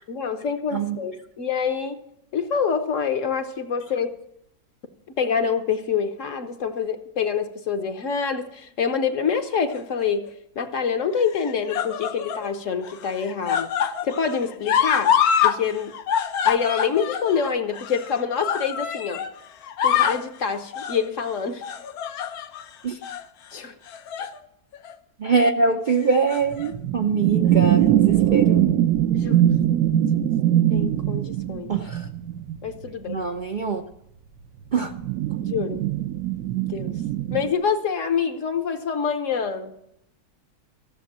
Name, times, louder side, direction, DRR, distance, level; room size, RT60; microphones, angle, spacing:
voice 1, 0.1-2.0 2.3-4.1 5.2-10.3 10.6-13.7 14.0-15.2 15.4-15.9 16.4-19.2 19.8-21.6 23.5-23.7 29.1-29.5 30.7-31.7 32.6-33.3 35.4-35.8 36.6-37.0 37.3-39.7, left 6 dB, 55° left, 1.2 m, -26 dB
sound 1, 9.7-10.3 11.2-12.5 12.8-15.6 15.8-19.3 19.6-20.3 20.7-21.0 21.6-22.6 23.0-23.2 23.9-24.4 24.7-24.9 26.0-26.7 27.6-27.7, left 8 dB, 75° left, 1.2 m, -25 dB
voice 2, 25.2-28.7 31.7-32.0 33.1-33.8 34.7-34.9, right 4 dB, 55° right, 0.5 m, -23 dB
sound 2, 26.5-32.9 34.8-37.5, right 11 dB, 75° right, 1.1 m, -21 dB
14.5 x 7.1 x 7.3 m
omnidirectional pair, 1.6 m